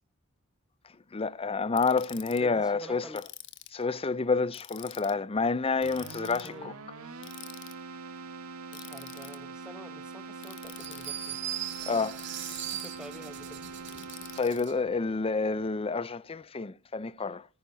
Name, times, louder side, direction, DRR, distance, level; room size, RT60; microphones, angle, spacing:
voice 1, 1.1-3.1 3.7-6.8 11.9-12.2 14.4-17.5, left 4 dB, 25° left, 0.5 m, -29 dB
Ratchet pawl, 1.8-2.4 3.2-3.8 4.5-5.1 5.8-6.5 7.2-7.7 8.7-9.4 10.4-11.1 12.2-13.0 13.9-14.7, left 14 dB, 55° left, 1.3 m, -47 dB
voice 2, 2.4-3.3 6.4-6.7 8.7-11.8 12.7-13.6, equal, 5° right, 1.0 m, -48 dB
Keyboard (musical), 5.8-14.8, right 4 dB, 75° right, 1.8 m, -43 dB
sound 1, 10.8-14.8, right 11 dB, 55° right, 2.1 m, -39 dB
20.0 x 14.0 x 2.7 m
head